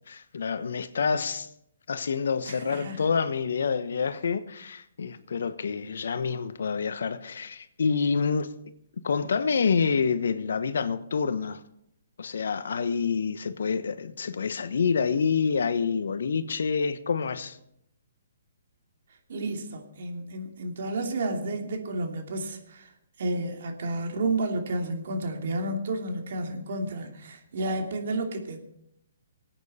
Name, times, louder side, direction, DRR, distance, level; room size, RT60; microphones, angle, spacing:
voice 1, 0.1-1.5 1.9-8.5 9.0-11.6 12.2-17.6, left 5 dB, 75° left, 1.1 m, -27 dB
voice 2, 2.5-3.1 19.3-22.9 23.2-28.6, right 2 dB, 65° right, 2.8 m, -31 dB
20.5 x 9.1 x 4.3 m
hypercardioid pair, 145°, 0 cm